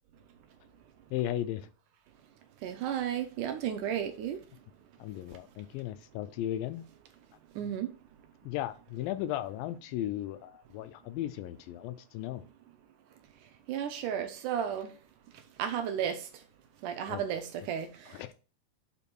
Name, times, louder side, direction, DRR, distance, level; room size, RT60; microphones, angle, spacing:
voice 1, 1.1-1.7 5.0-6.9 8.4-12.5 17.1-17.3 18.1-18.3, left 12 dB, 85° left, 2.4 m, -36 dB
voice 2, 2.6-4.4 7.6-7.9 13.7-14.9 15.6-16.2 16.8-17.9, right 9 dB, 75° right, 2.1 m, -33 dB
6.9 x 5.1 x 4.5 m
omnidirectional pair, 4.1 m